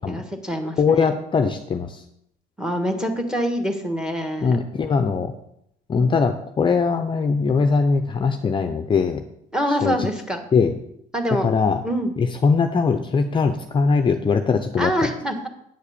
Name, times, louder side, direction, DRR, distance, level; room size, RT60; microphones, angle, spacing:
voice 1, 0.1-1.1 2.6-4.6 9.5-10.4 11.1-11.5 11.8-12.1 14.8-15.5, equal, 5° right, 5 dB, 1.4 m, -25 dB
voice 2, 0.8-2.0 4.4-5.3 5.9-9.2 9.8-10.0 10.5-10.8 11.4-11.8 12.2-14.9, left 5 dB, 30° left, 6 dB, 0.6 m, -21 dB
9.2 x 4.8 x 6.8 m, 0.76 s
cardioid pair, 110°, 17 cm